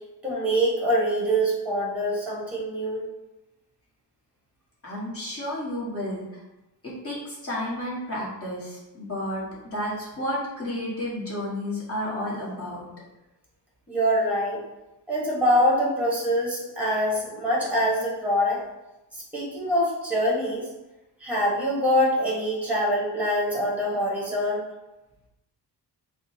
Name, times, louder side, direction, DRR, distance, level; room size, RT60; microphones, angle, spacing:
voice 1, 0.2-3.0 13.9-14.6 15.1-18.6 19.1-20.7 21.2-24.6, equal, 5° right, -5 dB, 1.1 m, -24 dB
voice 2, 4.8-6.2 6.8-12.9, left 1 dB, 30° left, -7 dB, 1.4 m, -31 dB
4.9 x 2.3 x 2.7 m, 0.99 s
wide cardioid pair, 135°, 43 cm